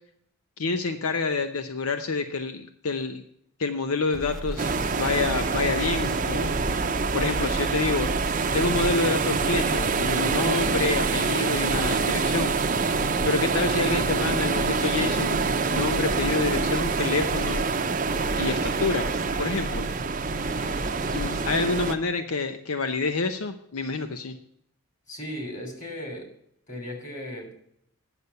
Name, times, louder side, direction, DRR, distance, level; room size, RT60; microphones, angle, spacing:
voice 1, 0.6-3.2 3.6-6.6 7.1-8.1 8.5-12.6 13.2-17.7 18.4-19.1 19.4-19.8 21.1-24.3, left 3 dB, 85° left, 0.8 m, -28 dB
sound 1, 4.1-21.6, right 1 dB, ahead, 1.2 m, -36 dB
sound 2, 4.6-22.0, right 4 dB, 35° right, 0.6 m, -26 dB
voice 2, 25.1-26.3 26.7-27.5, equal, 35° left, 3.1 m, -37 dB
10.0 x 6.8 x 6.7 m
head